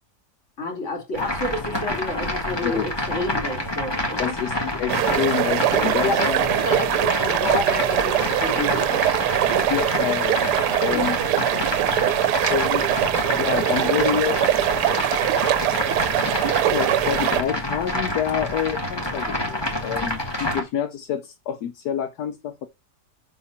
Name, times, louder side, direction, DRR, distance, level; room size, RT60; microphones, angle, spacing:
voice 1, 0.6-4.4 5.8-9.0 10.8-11.1, left 1 dB, 45° left, 3.0 m, -30 dB
sound 1, 1.1-20.6, left 1 dB, 15° left, 1.5 m, -27 dB
voice 2, 4.2-6.4 9.7-11.2 11.8-11.9 12.5-14.4 16.2-22.7, left 9 dB, 75° left, 1.2 m, -28 dB
sound 2, 4.9-17.4, right 13 dB, 90° right, 1.2 m, -22 dB
7.0 x 3.5 x 5.7 m
omnidirectional pair, 1.7 m